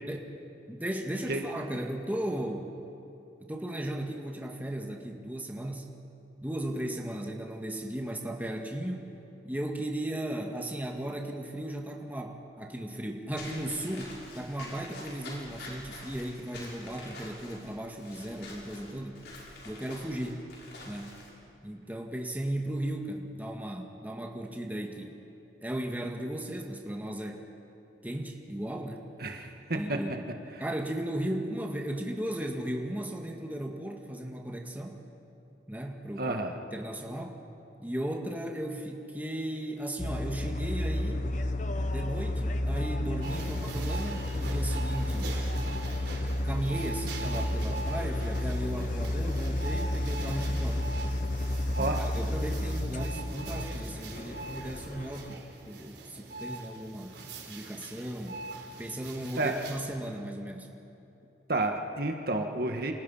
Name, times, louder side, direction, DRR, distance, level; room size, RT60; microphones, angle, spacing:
voice 1, 0.7-2.7 3.4-5.9 6.4-9.1 9.4-19.2 19.6-20.5 20.9-21.1 21.6-25.1 25.6-27.4 28.0-29.1 29.7-30.3 30.6-35.0 35.7-36.4 36.7-37.4 37.8-41.3 41.9-45.3 45.9-46.0 46.4-50.8 51.7-57.2 57.5-58.4 58.8-60.7, right 1 dB, 10° right, 1 dB, 1.9 m, -36 dB
Walk footsteps / Squeak, 13.3-21.3, left 2 dB, 70° left, 7.1 m, -46 dB
voice 2, 29.2-30.0 36.2-36.5 51.8-52.0 59.4-59.5 61.5-62.9, right 2 dB, 60° right, 4 dB, 1.9 m, -30 dB
sound 1, 40.0-55.3, left 1 dB, 45° left, 1.2 m, -31 dB
sound 2, 43.2-59.8, right 3 dB, 75° right, 4.2 m, -43 dB
29.5 x 27.0 x 5.7 m, 2.9 s
head